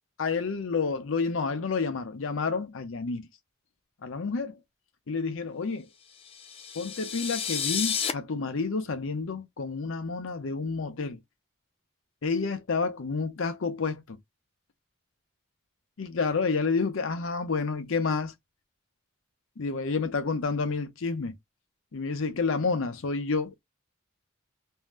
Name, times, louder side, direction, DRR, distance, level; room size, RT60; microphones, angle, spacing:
voice 1, 0.2-3.3 4.0-4.6 5.1-5.9 6.7-11.2 12.2-14.2 16.0-18.3 19.6-21.3 21.9-23.5, left 4 dB, 75° left, 0.6 m, -29 dB
sound 1, 6.2-8.1, left 7 dB, 30° left, 0.3 m, -31 dB
2.7 x 2.0 x 3.3 m
head